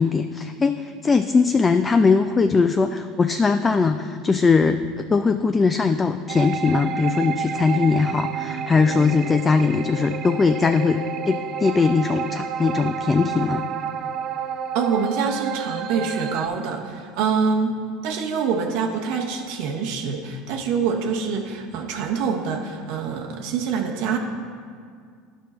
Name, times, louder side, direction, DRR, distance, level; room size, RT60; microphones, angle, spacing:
voice 1, 0.0-13.6, left 4 dB, 20° left, 9 dB, 0.3 m, -20 dB
sound 1, 6.3-16.5, right 7 dB, 45° right, 0.5 m, -30 dB
voice 2, 14.7-17.8 18.0-24.2, right 5 dB, 70° right, 1 dB, 0.8 m, -25 dB
10.0 x 5.4 x 4.2 m, 2.1 s
supercardioid pair, 100°, 0 cm